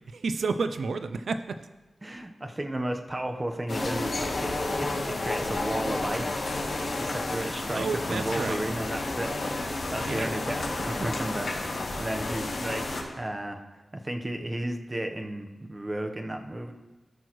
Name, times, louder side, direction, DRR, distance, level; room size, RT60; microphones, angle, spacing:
voice 1, 0.1-1.6 7.7-8.7 10.1-10.3 11.5-11.6, right 4 dB, 80° right, 10 dB, 0.4 m, -31 dB
voice 2, 2.0-6.7 6.9-9.4 9.7-12.8 13.1-13.6 13.9-16.7, right 1 dB, 20° right, 4 dB, 0.9 m, -34 dB
sound 1, 3.7-13.0, left 2 dB, 70° left, 2.4 m, -31 dB
17.5 x 6.2 x 3.1 m, 1.1 s
wide cardioid pair, 105°, 0 cm